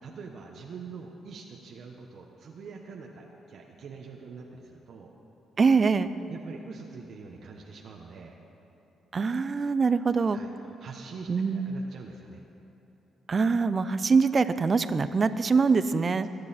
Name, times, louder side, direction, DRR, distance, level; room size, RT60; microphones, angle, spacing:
voice 1, 0.0-5.1 6.3-8.4 10.3-10.5 10.8-12.5, right 5 dB, 60° right, 0 dB, 1.1 m, -44 dB
voice 2, 5.6-6.1 9.1-10.4 11.3-11.8 13.3-16.3, right 4 dB, 35° right, 13 dB, 0.5 m, -24 dB
21.5 x 9.8 x 4.3 m, 3.0 s
cardioid pair, 90°, 0 cm